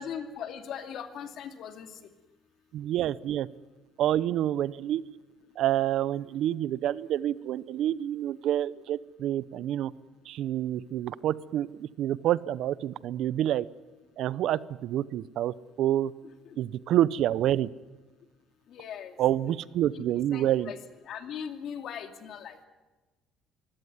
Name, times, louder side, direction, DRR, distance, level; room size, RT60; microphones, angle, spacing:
voice 1, 0.0-1.9 16.2-16.6 18.7-19.1 19.9-20.0 20.3-20.8 21.0-22.7, left 8 dB, 65° left, 6 dB, 2.4 m, -39 dB
voice 2, 2.7-3.5 4.0-5.1 5.6-9.9 10.3-13.6 14.2-16.1 16.6-17.7 19.2-20.7, right 12 dB, 70° right, 19 dB, 0.7 m, -28 dB
23.5 x 16.5 x 9.6 m, 1.2 s
cardioid pair, 95°, 0 cm